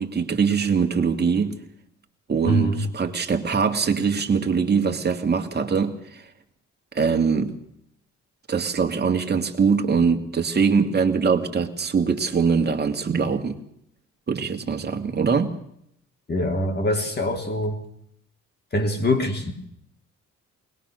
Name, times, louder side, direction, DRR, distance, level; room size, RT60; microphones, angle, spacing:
voice 1, 0.0-1.6 2.3-6.2 6.9-7.6 8.5-13.6 14.3-15.6, right 5 dB, 35° right, 2.5 m, -22 dB
voice 2, 2.5-2.8 16.3-17.8 18.7-19.5, left 1 dB, 35° left, 3.8 m, -23 dB
21.0 x 20.0 x 6.6 m
cardioid pair, 90°, 30 cm